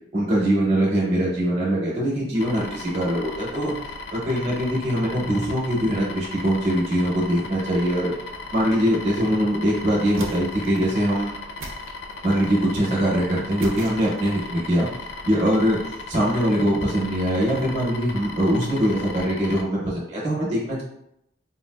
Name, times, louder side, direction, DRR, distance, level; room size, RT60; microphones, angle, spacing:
voice 1, 0.1-3.7 4.1-8.1 8.5-11.3 12.2-14.9 15.3-15.8 16.1-20.8, equal, 35° right, -5 dB, 0.7 m, -22 dB
sound 1, 2.4-19.7, left 3 dB, 60° left, 0.3 m, -37 dB
sound 2, 10.1-10.9 11.6-12.5 13.6-14.5, right 3 dB, 90° right, 0.5 m, -40 dB
3.6 x 2.4 x 2.3 m, 0.78 s
head